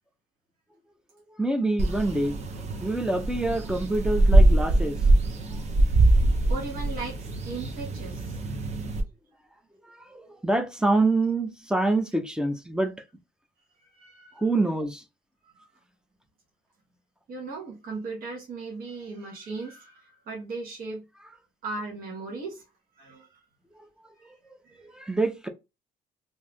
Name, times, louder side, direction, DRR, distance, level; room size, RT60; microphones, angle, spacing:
voice 1, 1.3-2.4 2.8-5.0 9.8-12.9 14.3-15.0 23.8-24.3 24.8-25.5, right 2 dB, 5° right, 0.5 m, -26 dB
sound 1, 1.8-9.0, right 2 dB, 40° right, 0.7 m, -23 dB
voice 2, 6.2-8.4 13.8-14.4 17.3-21.0 21.6-22.6 23.0-23.3 24.6-24.8, right 3 dB, 55° right, 1.0 m, -37 dB
2.7 x 2.3 x 3.3 m
cardioid pair, 110°, 17 cm